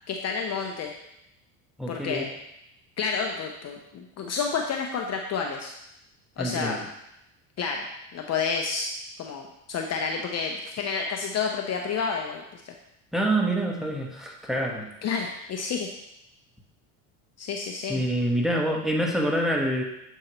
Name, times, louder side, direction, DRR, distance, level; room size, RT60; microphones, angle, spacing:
voice 1, 0.1-0.9 1.9-2.3 3.0-5.7 6.4-6.8 7.6-8.9 9.2-12.8 15.0-15.9 17.4-18.0, left 5 dB, 35° left, 2 dB, 0.7 m, -30 dB
voice 2, 1.8-2.3 6.4-6.9 13.1-14.9 17.9-19.8, right 1 dB, ahead, -1 dB, 1.2 m, -26 dB
7.7 x 4.6 x 3.0 m, 0.82 s
hypercardioid pair, 90°, 43 cm